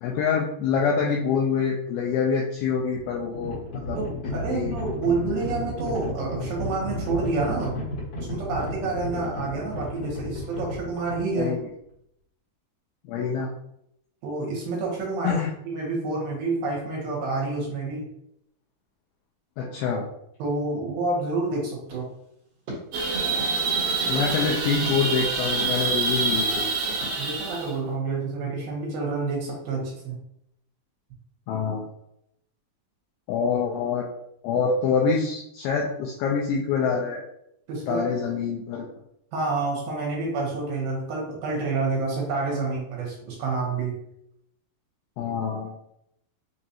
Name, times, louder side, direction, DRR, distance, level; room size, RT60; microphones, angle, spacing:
voice 1, 0.0-4.0 4.5-4.8 11.4-11.6 13.1-13.5 15.2-15.5 19.6-20.1 24.0-27.0 31.5-31.9 33.3-34.1 34.4-37.2 37.9-38.9 45.2-45.7, left 6 dB, 85° left, -1 dB, 2.2 m, -26 dB
Livestock farm animals working animals, 2.6-11.6, left 1 dB, 60° left, 2.0 m, -33 dB
voice 2, 3.9-7.8 8.3-11.5 14.2-15.4 15.7-18.1 20.4-22.1 27.2-30.2 37.7-38.0 39.3-44.0, right 3 dB, 70° right, -2 dB, 2.6 m, -28 dB
sound 1, 21.9-23.6 24.1-24.3 24.9-25.0 25.6-25.7 26.3-26.4 27.0-27.1, right 1 dB, 55° right, 1.8 m, -40 dB
sound 2, 22.9-27.7, right 4 dB, 85° right, 1.8 m, -26 dB
6.3 x 2.4 x 2.8 m, 0.75 s
omnidirectional pair, 4.9 m